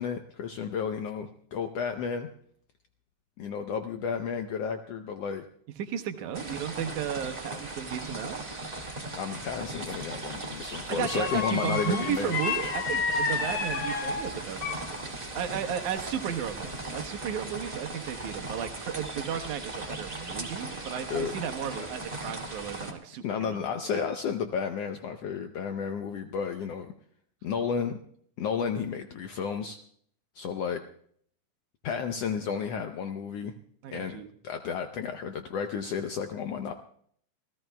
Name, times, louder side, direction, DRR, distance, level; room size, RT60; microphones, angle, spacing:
voice 1, 0.0-2.3 3.4-5.4 9.1-12.4 21.1-21.3 21.8-21.9 23.2-26.9 27.4-28.0 28.4-29.8 30.3-30.8 31.8-33.5 33.9-36.7, left 6 dB, 75° left, 6 dB, 1.5 m, -32 dB
voice 2, 5.8-8.4 10.9-23.6 23.9-24.0 33.8-34.3, right 9 dB, 75° right, 6 dB, 2.3 m, -34 dB
sound 1, 6.3-22.9, right 2 dB, 20° right, 1.3 m, -38 dB
sound 2, 9.8-10.2 11.0-15.0 15.4-16.3 16.7-17.0, left 4 dB, 55° left, 2.5 m, -32 dB
27.5 x 15.5 x 2.2 m, 0.62 s
omnidirectional pair, 3.6 m